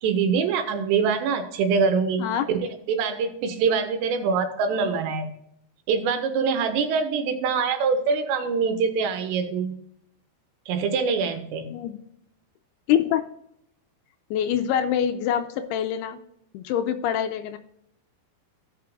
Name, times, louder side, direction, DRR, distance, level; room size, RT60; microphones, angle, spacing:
voice 1, 0.0-2.6 2.9-5.3 5.9-9.7 10.7-11.7, right 5 dB, 85° right, 6 dB, 3.1 m, -24 dB
voice 2, 12.9-13.2 14.3-16.2 16.5-17.6, left 9 dB, 85° left, 8 dB, 2.4 m, -25 dB
16.5 x 5.9 x 2.4 m, 0.75 s
omnidirectional pair, 5.1 m